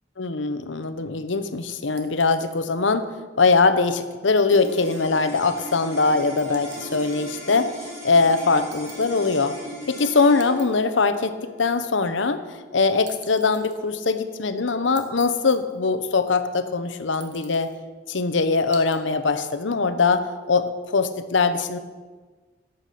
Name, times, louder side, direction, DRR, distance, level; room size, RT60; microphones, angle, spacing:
voice 1, 0.2-9.6 9.9-12.4 12.7-17.7 18.1-21.8, left 4 dB, 90° left, 11 dB, 0.9 m, -22 dB
sound 1, 2.0-2.9 4.4-5.0 6.4-7.2 8.7-9.4 10.2-10.9 13.1-13.8 14.9-15.8 17.1-17.8 18.7-19.0, right 7 dB, 75° right, 1.6 m, -47 dB
sound 2, 4.5-15.0, left 1 dB, 15° right, 2.8 m, -38 dB
13.5 x 8.1 x 5.8 m, 1.4 s
head